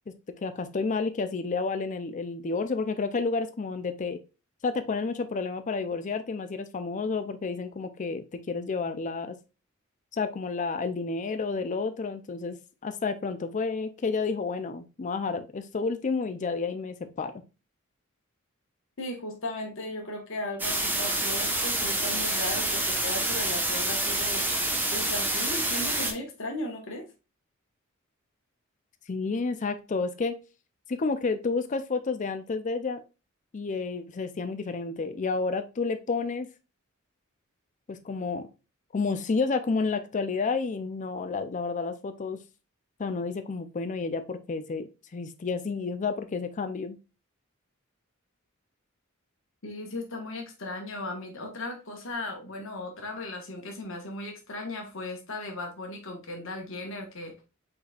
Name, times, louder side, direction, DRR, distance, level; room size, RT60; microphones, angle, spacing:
voice 1, 0.4-4.2 4.6-9.4 10.1-12.6 12.8-17.3 29.1-30.4 30.9-33.0 33.5-36.5 37.9-38.5 38.9-42.4 43.0-44.9 45.1-47.0, left 4 dB, 35° left, 9 dB, 0.4 m, -30 dB
voice 2, 19.0-24.4 24.9-27.0 49.6-57.3, left 2 dB, 65° left, 2 dB, 1.3 m, -36 dB
sound 1, 20.6-26.1, right 1 dB, 10° right, 1.0 m, -27 dB
5.4 x 4.1 x 2.3 m, 0.30 s
head